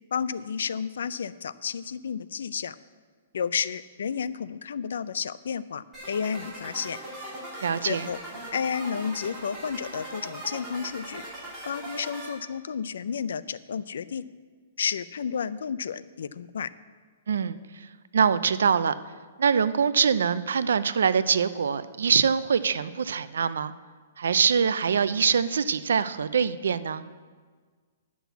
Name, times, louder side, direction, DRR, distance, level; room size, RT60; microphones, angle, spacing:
voice 1, 0.1-2.8 3.3-7.0 7.8-8.2 8.5-11.2 11.7-14.2 14.8-16.7, left 6 dB, 70° left, 17 dB, 0.4 m, -31 dB
sound 1, 5.9-12.3, right 1 dB, 5° right, 2.7 m, -40 dB
voice 2, 7.6-8.1 17.3-17.9 18.1-18.9 19.4-23.7 24.2-27.0, right 6 dB, 85° right, 15 dB, 0.5 m, -24 dB
10.0 x 6.2 x 8.1 m, 1.6 s
hypercardioid pair, 180°, 0 cm